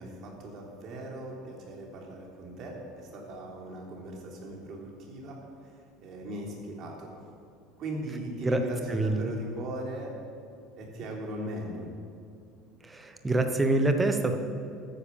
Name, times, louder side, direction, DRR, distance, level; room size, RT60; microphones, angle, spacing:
voice 1, 0.0-5.7 6.0-7.1 7.8-10.1 10.8-11.9, right 1 dB, 40° right, -1 dB, 3.5 m, -39 dB
voice 2, 8.9-9.3 12.8-14.3, right 2 dB, 10° right, 6 dB, 1.1 m, -26 dB
14.0 x 10.0 x 7.3 m, 2.4 s
cardioid pair, 160°, 0 cm